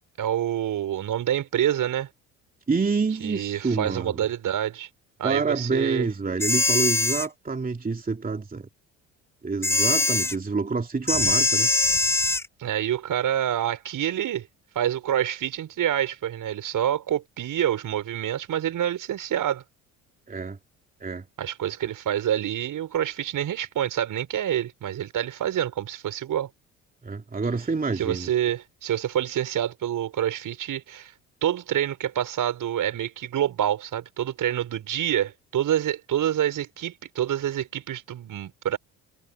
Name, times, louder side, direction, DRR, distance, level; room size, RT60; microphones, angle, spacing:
voice 1, 0.2-2.1 3.2-4.9 5.2-6.1 12.6-14.5 14.7-19.6 21.4-26.5 28.0-31.1 31.4-38.8, right 11 dB, 55° right, 6.1 m, -27 dB
voice 2, 2.7-4.2 5.2-8.7 9.4-11.7 20.3-20.6 21.0-21.2 27.0-28.3, right 4 dB, 20° right, 2.8 m, -27 dB
sound 1, 6.4-7.3 9.6-10.4 11.1-12.5, left 2 dB, 5° left, 0.5 m, -22 dB
hypercardioid pair, 60°, 38 cm